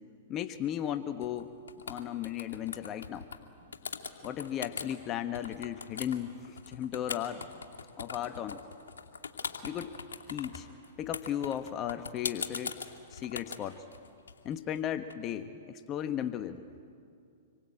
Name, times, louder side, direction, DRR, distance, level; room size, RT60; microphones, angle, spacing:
voice 1, 0.3-1.6 1.9-3.3 4.2-7.6 8.0-8.6 9.6-10.0 10.3-10.7 11.0-12.7 13.1-13.8 14.4-16.7, left 10 dB, 30° left, 10 dB, 1.1 m, -35 dB
sound 1, 1.2-1.4 1.7-3.4 3.7-4.9 5.3-15.1, left 5 dB, 80° left, 2.2 m, -40 dB
27.0 x 23.0 x 9.0 m, 2.4 s
hypercardioid pair, 115°, 0 cm